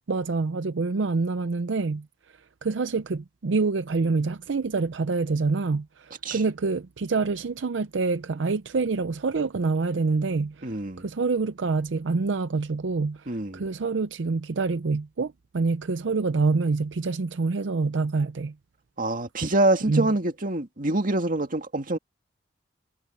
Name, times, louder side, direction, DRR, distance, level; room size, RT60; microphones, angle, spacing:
voice 1, 0.1-2.1 2.6-18.5 19.9-20.1, right 4 dB, 85° right, 0.6 m, -26 dB
voice 2, 10.6-11.1 13.3-13.7 19.0-22.0, right 2 dB, 50° right, 2.2 m, -25 dB
head